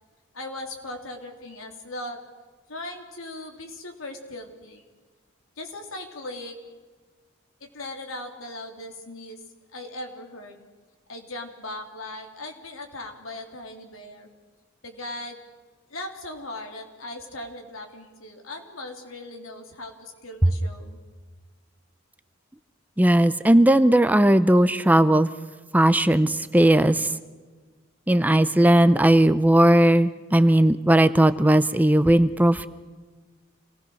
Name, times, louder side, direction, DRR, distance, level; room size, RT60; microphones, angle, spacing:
voice 1, 0.3-2.2 2.7-4.8 5.6-6.6 7.6-9.4 9.7-10.6 11.1-14.3 14.8-15.4 15.9-21.0, left 1 dB, 85° left, 3 dB, 3.5 m, -38 dB
voice 2, 23.0-25.3 25.7-27.1 28.1-32.7, right 1 dB, 10° right, 12 dB, 0.6 m, -18 dB
28.0 x 19.5 x 6.4 m, 1.4 s
head